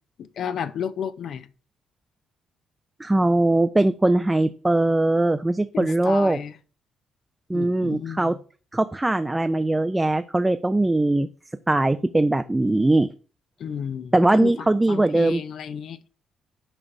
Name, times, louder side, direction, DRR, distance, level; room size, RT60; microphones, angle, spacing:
voice 1, 0.2-1.5 5.7-6.5 7.5-8.4 13.6-16.0, left 8 dB, 65° left, 0.5 m, -32 dB
voice 2, 3.0-6.4 7.5-8.3 8.7-11.3 11.7-13.1 14.1-15.4, right 2 dB, 15° right, 0.4 m, -21 dB
6.1 x 3.3 x 5.2 m
cardioid pair, 90°, 0 cm